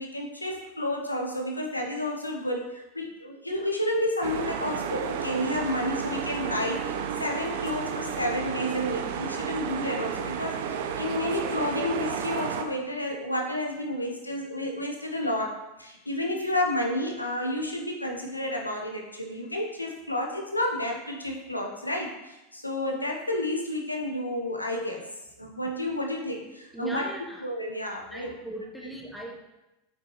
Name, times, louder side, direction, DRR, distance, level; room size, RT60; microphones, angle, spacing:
voice 1, 0.0-25.0 25.4-27.0 27.4-28.3, left 1 dB, 90° left, 1 dB, 1.0 m, -31 dB
sound 1, 4.2-12.6, right 7 dB, 60° right, 0.6 m, -32 dB
voice 2, 26.7-27.4 28.1-29.4, right 1 dB, ahead, -1 dB, 1.2 m, -38 dB
7.1 x 5.9 x 3.2 m, 0.98 s
figure-of-eight pair, 85°, 0 cm